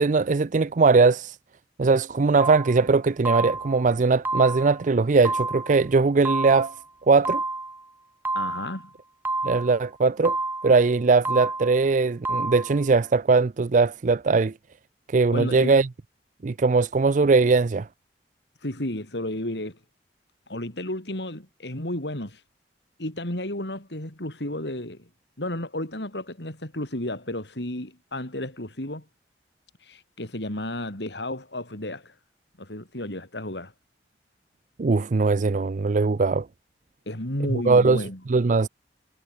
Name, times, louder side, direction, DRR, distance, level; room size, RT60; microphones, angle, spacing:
voice 1, 0.0-1.4 1.8-6.7 7.1-7.4 9.4-10.4 10.6-14.5 15.1-15.9 16.4-17.9 34.8-36.5 37.5-38.7, right 4 dB, 45° right, 0.5 m, -20 dB
sound 1, 2.4-2.8 3.2-3.8 4.2-4.8 5.2-5.8 6.2-6.8 7.2-7.8 8.2-8.8 9.2-9.8 10.2-10.8 11.2-11.8 12.2-12.8, right 2 dB, 10° right, 3.1 m, -29 dB
voice 2, 8.3-8.9 15.3-15.8 18.6-19.8 20.5-22.4 23.0-25.1 25.4-29.0 29.8-32.1 32.6-33.7 37.1-38.2, left 1 dB, 75° left, 4.7 m, -32 dB
head